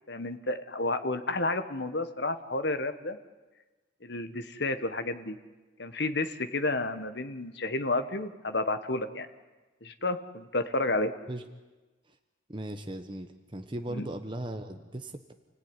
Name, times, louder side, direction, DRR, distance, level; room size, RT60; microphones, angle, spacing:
voice 1, 0.1-3.2 4.0-5.4 5.8-9.3 9.8-11.1 13.9-14.1, left 2 dB, 60° left, 9 dB, 1.6 m, -31 dB
voice 2, 12.5-15.3, right 1 dB, 25° right, 6 dB, 1.1 m, -38 dB
29.0 x 17.5 x 10.0 m, 1.2 s
head